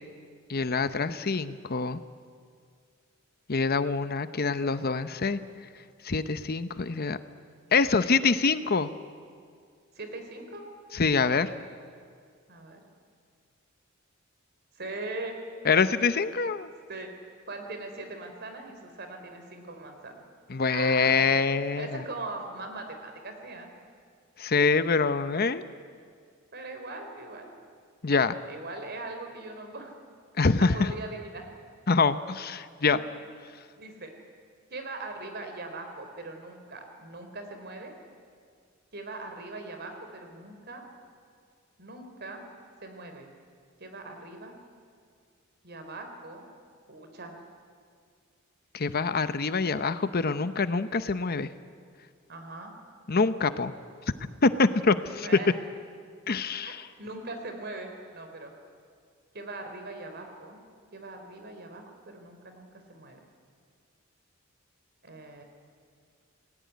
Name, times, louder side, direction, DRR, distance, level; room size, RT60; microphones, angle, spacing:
voice 1, 0.5-2.0 3.5-5.4 6.0-7.2 7.7-8.9 10.9-11.5 15.6-16.7 20.5-22.0 24.4-25.6 28.0-28.4 30.4-30.9 31.9-33.0 48.7-51.5 53.1-53.7 54.4-55.3 56.3-56.9, left 4 dB, 50° left, 12 dB, 0.9 m, -25 dB
voice 2, 5.1-5.5 9.9-10.6 12.5-12.8 14.8-15.4 16.9-17.1 17.5-20.2 20.7-21.2 21.8-23.7 26.5-27.5 28.5-29.9 30.6-31.5 32.8-33.0 33.8-34.1 34.7-37.9 38.9-40.8 41.8-42.5 42.8-43.3 43.8-44.6 45.6-46.4 46.9-47.4 52.3-52.7 55.2-55.5 56.6-58.5 59.3-60.6 60.9-63.2 65.0-65.4, right 2 dB, 55° right, 5 dB, 4.1 m, -40 dB
28.5 x 19.0 x 9.4 m, 2.2 s
head